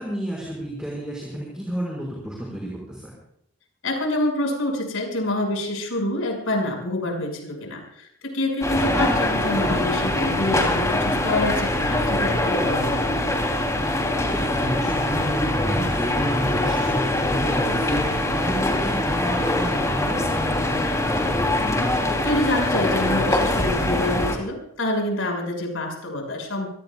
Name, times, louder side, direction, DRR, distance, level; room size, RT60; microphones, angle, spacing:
voice 1, 0.0-3.1 8.8-9.1 14.3-21.5, equal, 5° right, -3 dB, 5.5 m, -31 dB
voice 2, 3.8-13.3 22.2-26.7, left 1 dB, 70° left, 2 dB, 6.1 m, -26 dB
sound 1, 8.6-24.4, left 1 dB, 15° left, 3.3 m, -23 dB
27.5 x 18.0 x 2.4 m, 0.74 s
head